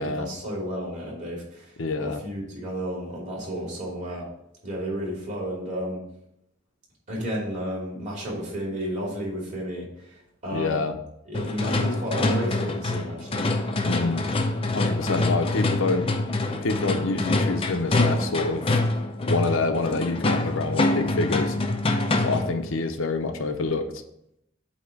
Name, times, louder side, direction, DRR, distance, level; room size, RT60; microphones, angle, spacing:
voice 1, 0.0-4.2 4.6-6.0 7.1-10.9 11.3-13.8, equal, 35° right, -5 dB, 2.8 m, -32 dB
voice 2, 1.8-2.2 10.5-10.9 13.8-14.3 14.7-16.1 16.6-18.7 19.3-21.6 22.2-24.0, left 3 dB, 70° left, 6 dB, 0.7 m, -27 dB
sound 1, 11.3-22.6, left 2 dB, 25° left, 0.5 m, -25 dB
8.4 x 2.9 x 5.8 m, 0.78 s
head